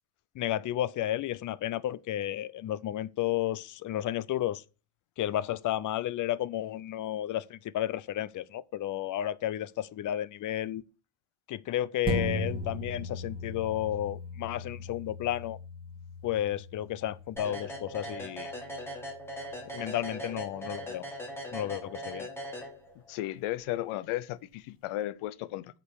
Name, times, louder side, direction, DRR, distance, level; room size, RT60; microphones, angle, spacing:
voice 1, 0.4-4.6 5.2-10.8 11.5-15.6 16.2-18.5 19.7-21.1 21.5-22.3, left 12 dB, 40° left, 0.4 m, -32 dB
sound 1, 12.0-20.9 21.3-21.4, equal, 10° right, 2.3 m, -39 dB
sound 2, 17.4-23.2, equal, 5° left, 1.8 m, -40 dB
voice 2, 23.1-25.8, left 15 dB, 75° left, 0.8 m, -34 dB
8.3 x 5.3 x 6.1 m
cardioid pair, 150°, 50 cm